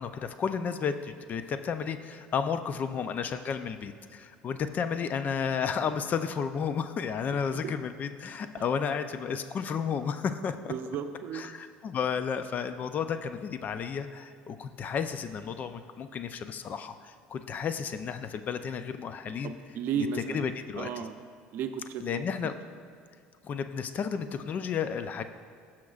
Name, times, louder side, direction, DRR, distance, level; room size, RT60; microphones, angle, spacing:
voice 1, 0.0-10.7 11.3-19.6 19.9-20.1 20.3-21.0 22.0-22.6 23.4-25.2, left 6 dB, 45° left, 10 dB, 0.5 m, -32 dB
voice 2, 10.7-11.5 19.4-20.4 20.8-21.2 21.5-22.5, right 7 dB, 60° right, 8 dB, 0.6 m, -35 dB
14.0 x 5.8 x 2.4 m, 2.2 s
supercardioid pair, 90°, 4 cm